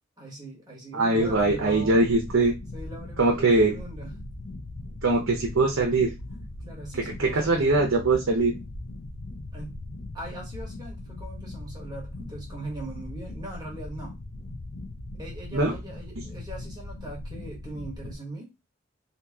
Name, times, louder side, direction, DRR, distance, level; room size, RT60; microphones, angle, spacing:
voice 1, 0.2-2.0 2.7-4.1 6.3-7.7 9.5-9.7 10.1-14.2 15.2-18.5, right 1 dB, 20° right, 1.3 m, -40 dB
voice 2, 0.9-2.5 3.2-3.7 5.0-6.1 7.2-8.5 15.5-15.7, right 2 dB, 70° right, 0.7 m, -22 dB
sound 1, 1.2-18.1, left 2 dB, 70° left, 0.6 m, -39 dB
2.9 x 2.7 x 3.5 m
head